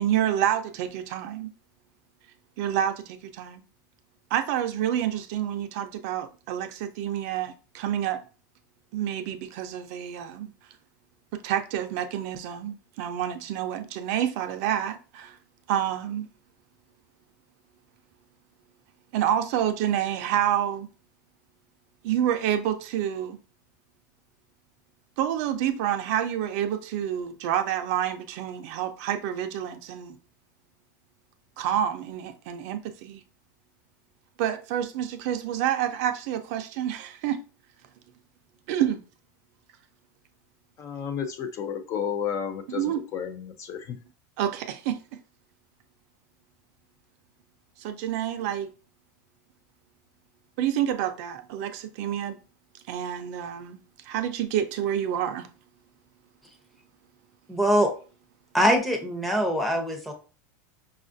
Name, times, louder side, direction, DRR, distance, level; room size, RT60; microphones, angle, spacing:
voice 1, 0.0-1.5 2.6-3.6 4.3-8.2 8.9-10.5 11.4-15.4 15.7-16.3 19.1-20.9 22.0-23.4 25.2-30.2 31.6-33.2 34.4-37.4 38.7-39.0 42.7-43.0 44.4-45.0 47.8-48.7 50.6-52.4 52.9-53.8 54.0-55.5, right 10 dB, 55° right, 0.5 m, -28 dB
voice 2, 40.8-44.0, left 7 dB, 30° left, 0.4 m, -32 dB
voice 3, 57.5-57.9 58.5-60.1, equal, ahead, 0.7 m, -23 dB
5.0 x 2.4 x 2.5 m
supercardioid pair, 145°, 10 cm